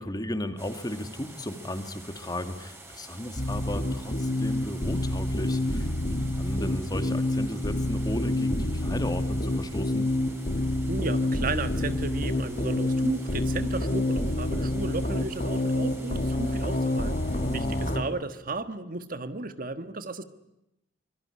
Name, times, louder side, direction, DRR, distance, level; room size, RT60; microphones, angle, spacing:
voice 1, 0.0-10.1 17.2-17.9, left 1 dB, 20° left, 8 dB, 2.2 m, -35 dB
sound 1, 0.6-18.0, right 2 dB, 15° right, 5.4 m, -48 dB
sound 2, 3.4-18.0, left 1 dB, 45° left, 2.4 m, -28 dB
voice 2, 10.9-17.2 17.5-20.2, right 2 dB, 50° right, 10 dB, 1.5 m, -34 dB
25.5 x 23.0 x 9.9 m, 0.86 s
head